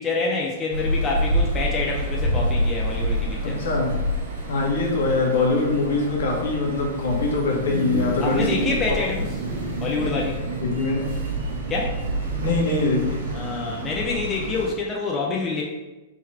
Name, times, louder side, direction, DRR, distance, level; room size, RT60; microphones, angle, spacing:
voice 1, 0.0-3.7 8.2-9.3 9.8-10.4 11.7-12.0 13.3-15.6, left 4 dB, 15° left, -2 dB, 0.4 m, -27 dB
sound 1, 0.7-14.7, right 1 dB, 75° right, 1.3 m, -27 dB
voice 2, 3.4-4.0 4.5-8.5 8.9-9.0 10.0-10.2 10.6-11.2 12.4-13.3, left 3 dB, 70° left, -1 dB, 1.2 m, -23 dB
3.7 x 3.0 x 4.3 m, 1.1 s
supercardioid pair, 175°, 0 cm